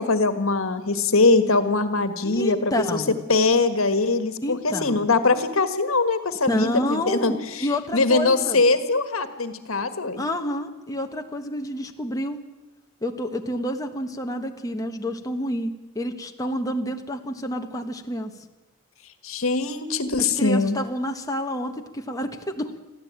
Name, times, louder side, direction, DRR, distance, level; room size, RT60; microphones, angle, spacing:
voice 1, 0.0-3.0 3.3-7.7 7.9-10.2 19.2-20.8, left 3 dB, 80° left, 10 dB, 1.7 m, -22 dB
voice 2, 2.2-3.2 4.4-5.1 6.5-8.6 10.2-12.4 13.0-18.3 20.2-22.8, equal, 15° left, 3 dB, 1.3 m, -29 dB
22.5 x 14.5 x 8.9 m, 1.1 s
head